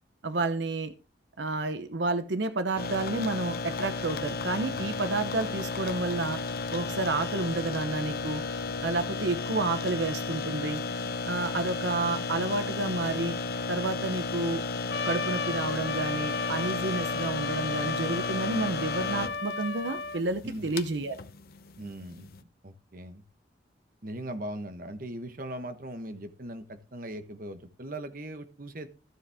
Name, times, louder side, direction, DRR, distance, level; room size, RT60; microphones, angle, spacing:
voice 1, 0.2-0.9 1.4-6.4 6.7-8.4 8.8-10.8 11.3-13.4 13.7-14.6 15.0-21.2, right 2 dB, 85° right, 10 dB, 0.9 m, -30 dB
sound 1, 2.8-22.4, left 4 dB, 55° left, 0.8 m, -34 dB
Trumpet, 14.9-20.2, left 4 dB, 80° left, 1.0 m, -34 dB
voice 2, 21.8-22.3 22.6-23.2 24.0-28.9, right 1 dB, 50° right, 8 dB, 1.2 m, -39 dB
14.0 x 7.3 x 3.5 m, 0.33 s
head